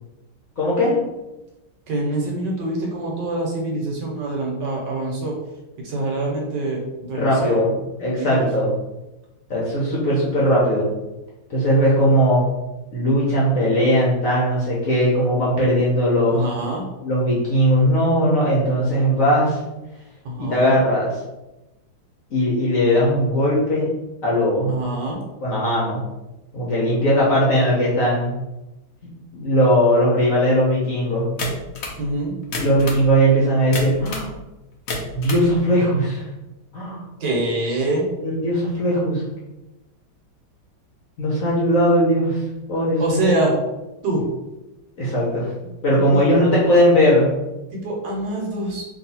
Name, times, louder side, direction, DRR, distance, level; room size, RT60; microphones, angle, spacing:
voice 1, 0.6-1.0 7.1-7.7 8.0-8.7 9.5-10.9 11.5-12.5 12.9-16.4 17.0-19.6 20.5-21.1 22.3-23.9 24.2-24.7 25.4-26.0 26.5-28.3 29.3-31.3 32.5-34.3 35.1-36.2 36.7-37.0 38.2-39.2 41.2-42.4 42.7-43.2 45.0-45.5 45.8-47.3, equal, 55° left, -5 dB, 1.1 m, -19 dB
voice 2, 1.9-5.3 5.8-7.7 8.0-8.5 16.3-16.8 20.2-20.7 24.7-25.2 32.0-32.3 37.2-38.0 43.0-43.5 44.0-44.2 46.1-46.2 47.7-48.8, right 2 dB, 65° right, -1 dB, 1.4 m, -25 dB
sound 1, 31.4-32.0 32.4-33.1 33.7-34.3 34.7-35.5, left 2 dB, 75° left, 0.6 m, -29 dB
3.2 x 2.7 x 4.1 m, 1.0 s
omnidirectional pair, 2.2 m